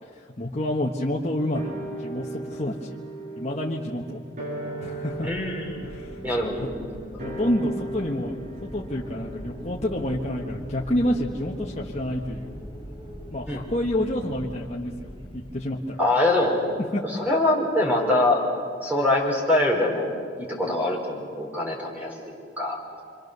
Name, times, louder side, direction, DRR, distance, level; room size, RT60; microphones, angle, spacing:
voice 1, 0.0-1.7 2.0-3.0 3.4-4.2 4.8-5.3 5.8-6.7 7.2-12.5 13.3-16.0 16.9-17.0, left 1 dB, 35° left, -3 dB, 1.4 m, -29 dB
sound 1, 1.5-12.2 12.4-12.5, right 2 dB, 40° right, 5.0 m, -38 dB
sound 2, 5.1-15.5, equal, 25° right, 4.3 m, -41 dB
voice 2, 5.2-6.7 13.5-13.6 16.0-16.6 17.2-18.4 18.8-23.0, left 1 dB, 10° right, -1 dB, 4.6 m, -24 dB
27.5 x 25.0 x 6.8 m, 2.2 s
head